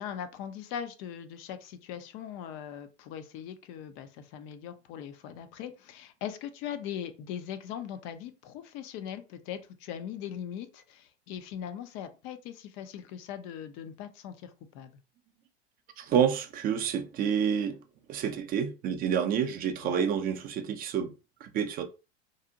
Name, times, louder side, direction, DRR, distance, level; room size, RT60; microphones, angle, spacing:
voice 1, 0.0-14.9 19.8-20.1, left 9 dB, 40° left, 0.4 m, -40 dB
voice 2, 16.0-17.8 18.1-21.1 21.4-21.8, right 8 dB, 25° right, 0.4 m, -28 dB
2.6 x 2.0 x 2.6 m
hypercardioid pair, 85°, 34 cm